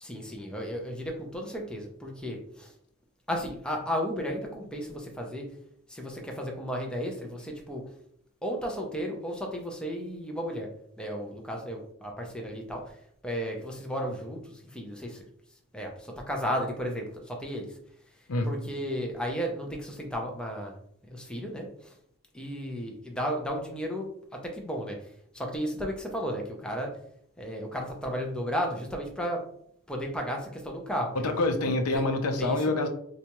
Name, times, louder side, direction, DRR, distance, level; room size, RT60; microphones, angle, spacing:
voice 1, 0.0-2.7 3.3-5.4 5.9-7.8 8.4-10.7 11.0-12.8 13.2-15.2 15.7-17.7 18.4-20.7 21.1-21.9 22.3-24.1 24.4-25.0 25.3-26.9 27.4-29.4 29.9-31.3 31.9-32.0 32.4-32.7, equal, 5° left, 1 dB, 0.5 m, -34 dB
voice 2, 31.1-32.9, left 2 dB, 85° left, 5 dB, 0.6 m, -26 dB
4.0 x 2.3 x 2.9 m, 0.69 s
head